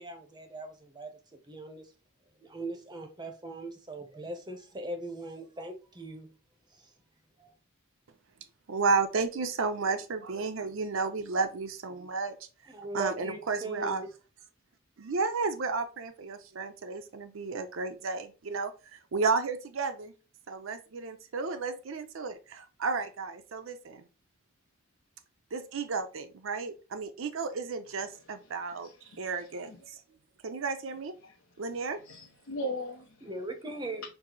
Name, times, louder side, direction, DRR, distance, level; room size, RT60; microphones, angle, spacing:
voice 1, 0.0-1.9 2.4-6.3 6.8-6.9 7.4-7.5 12.7-14.1 33.2-34.0, right 2 dB, 20° right, 0.7 m, -40 dB
voice 2, 8.7-12.4 12.9-14.0 15.0-20.1 20.5-24.0 25.5-28.9 29.2-30.0 30.4-31.1 31.6-32.0, right 4 dB, 65° right, 0.5 m, -32 dB
voice 3, 28.1-29.8 31.2-31.4 31.8-33.2, equal, 80° left, 0.6 m, -40 dB
4.6 x 2.0 x 3.8 m
head